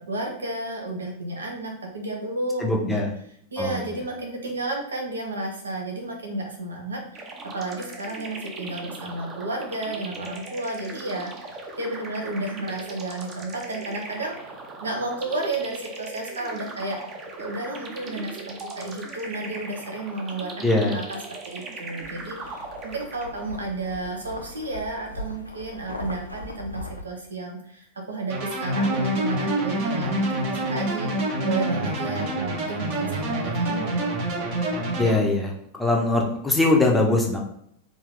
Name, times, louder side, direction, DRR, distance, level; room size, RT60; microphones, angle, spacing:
voice 1, 0.0-3.0 3.5-7.3 7.5-14.5 14.8-17.0 17.4-20.7 20.9-21.2 21.4-34.0, right 2 dB, 75° right, 1 dB, 0.7 m, -32 dB
voice 2, 2.6-3.1 3.6-3.8 20.6-21.0 35.0-37.4, left 2 dB, 10° left, -1 dB, 0.6 m, -22 dB
sound 1, 7.1-23.5, right 3 dB, 30° right, 0.7 m, -39 dB
sound 2, 22.0-27.0, left 1 dB, 85° left, 0.4 m, -39 dB
sound 3, 28.3-35.2, right 1 dB, 45° right, 1.0 m, -26 dB
3.6 x 2.5 x 3.5 m, 0.71 s
figure-of-eight pair, 90°, 0 cm